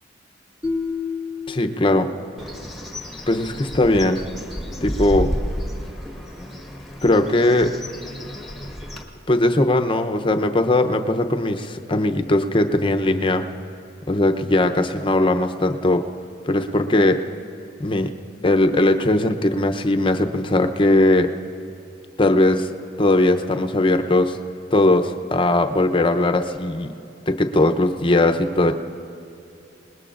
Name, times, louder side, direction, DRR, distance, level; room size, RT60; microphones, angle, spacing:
sound 1, 0.6-2.8, left 4 dB, 25° right, 1.2 m, -30 dB
voice 1, 1.5-2.1 3.3-4.2 4.8-5.3 7.0-7.7 9.3-13.4 14.1-16.0 16.4-17.2 17.8-18.1 18.4-21.3 22.2-22.7 23.0-24.4 24.7-26.9 27.3-28.7, left 1 dB, 25° left, 7 dB, 0.7 m, -19 dB
Bird, 2.4-9.0, equal, ahead, 1.3 m, -31 dB
27.5 x 20.5 x 2.5 m, 2.8 s
head